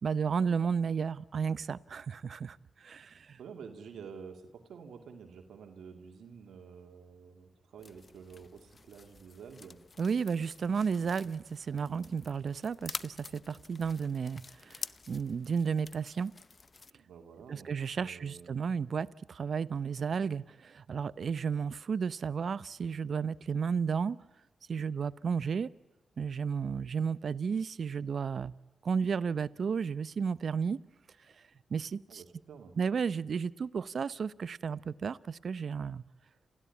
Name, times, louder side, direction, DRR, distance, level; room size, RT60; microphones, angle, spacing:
voice 1, 0.0-3.4 10.0-16.3 17.5-24.2 24.7-25.7 26.2-28.5 28.8-30.8 31.7-32.2 32.8-36.0, right 6 dB, 65° right, 0.7 m, -33 dB
voice 2, 3.4-9.8 11.0-11.1 11.6-11.8 16.9-17.7 18.0-18.6 32.1-32.7, right 6 dB, 80° right, 2.3 m, -49 dB
sound 1, 7.8-16.9, left 4 dB, 45° left, 0.7 m, -48 dB
28.0 x 16.0 x 8.4 m
supercardioid pair, 45°, 0 cm